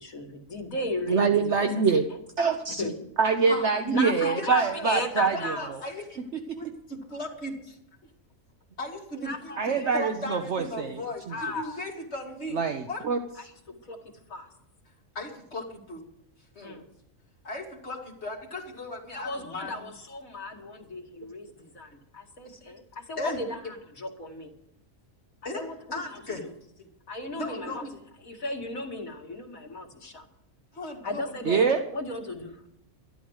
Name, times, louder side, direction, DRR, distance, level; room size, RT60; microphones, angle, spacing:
voice 1, 0.0-1.7 2.8-3.0 3.9-5.7 9.2-10.1 11.3-11.8 13.4-13.5 13.8-14.5 16.6-16.9 19.1-24.5 25.6-26.5 27.1-27.9 28.2-30.3 31.0-32.6, left 2 dB, 85° left, 3 dB, 2.6 m, -35 dB
voice 2, 1.1-2.0 2.4-2.8 3.2-5.6 9.6-11.0 12.5-13.2 31.5-31.8, right 5 dB, 60° right, 6 dB, 1.2 m, -24 dB
voice 3, 3.4-5.0 5.3-6.2 6.5-7.8 8.8-11.3 11.5-12.6 12.9-13.0 15.1-16.1 16.5-16.8 17.4-19.9 22.4-22.7 23.2-23.4 25.4-26.4 26.8-26.9 27.3-28.0 30.7-31.6, left 1 dB, 50° left, 0 dB, 3.0 m, -37 dB
12.5 x 12.0 x 6.4 m, 0.75 s
omnidirectional pair, 1.4 m